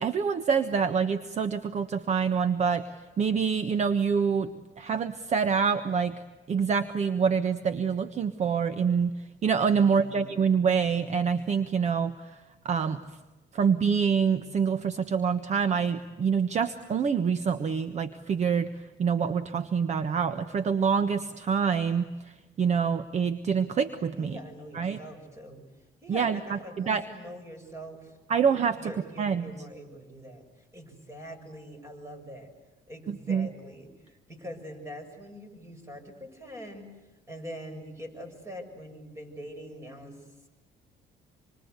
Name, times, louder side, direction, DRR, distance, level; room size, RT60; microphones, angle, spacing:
voice 1, 0.0-2.9 3.2-6.1 6.5-9.2 9.4-12.4 12.6-13.0 13.5-18.7 19.0-24.4 24.7-25.0 26.1-27.0 28.3-28.9 29.2-29.5 33.1-33.5, right 6 dB, 40° right, 11 dB, 1.3 m, -26 dB
voice 2, 9.8-10.4 24.2-25.6 26.0-32.5 32.9-40.5, equal, 15° right, 5 dB, 7.1 m, -44 dB
27.0 x 24.5 x 8.2 m, 1.1 s
cardioid pair, 110°, 17 cm